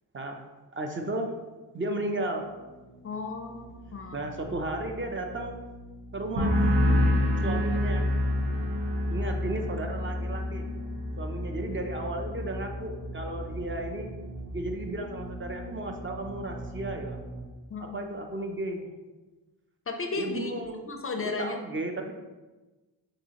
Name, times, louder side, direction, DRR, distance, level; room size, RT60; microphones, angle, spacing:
voice 1, 0.7-1.3 1.7-2.5 4.1-5.6 6.1-6.8 7.4-8.1 9.1-10.7 11.2-14.1 14.5-17.2 17.8-18.9 20.2-20.9 21.2-22.1, right 1 dB, 30° right, 3 dB, 0.4 m, -34 dB
sound 1, 2.2-17.5, right 1 dB, 50° right, 0.8 m, -43 dB
voice 2, 3.0-4.3 17.7-18.0 19.9-20.5 20.9-21.6, left 3 dB, 35° left, 4 dB, 0.4 m, -34 dB
sound 2, 6.4-13.8 14.1-14.6, left 1 dB, 80° right, 1.0 m, -28 dB
5.4 x 3.1 x 2.8 m, 1.2 s
wide cardioid pair, 110°, 39 cm